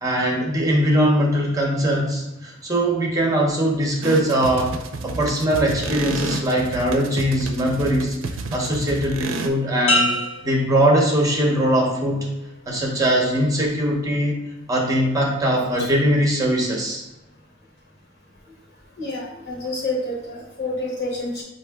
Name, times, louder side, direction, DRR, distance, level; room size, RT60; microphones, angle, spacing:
voice 1, 0.0-4.7 5.0-8.2 8.5-10.1 10.4-12.2 12.7-14.4 14.7-17.0, right 1 dB, 15° right, -1 dB, 0.7 m, -21 dB
sound 1, 4.0-9.5, right 3 dB, 70° right, 0.5 m, -30 dB
sound 2, 9.9-11.7 12.2-12.6, left 1 dB, 75° left, 1.1 m, -26 dB
voice 2, 19.0-21.4, left 2 dB, 55° left, -3 dB, 1.4 m, -28 dB
5.5 x 2.8 x 3.4 m, 0.92 s
head